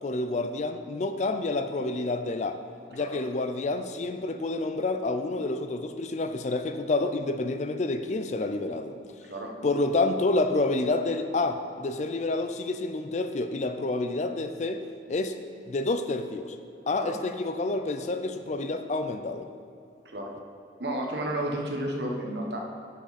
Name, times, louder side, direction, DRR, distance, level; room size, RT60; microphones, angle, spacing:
voice 1, 0.0-2.6 2.9-9.0 9.6-14.8 15.1-15.4 15.7-16.6 16.9-19.5, left 2 dB, 40° left, 8 dB, 0.4 m, -28 dB
voice 2, 20.8-22.6, right 1 dB, 65° right, 0 dB, 1.2 m, -32 dB
10.5 x 6.2 x 4.2 m, 2.5 s
head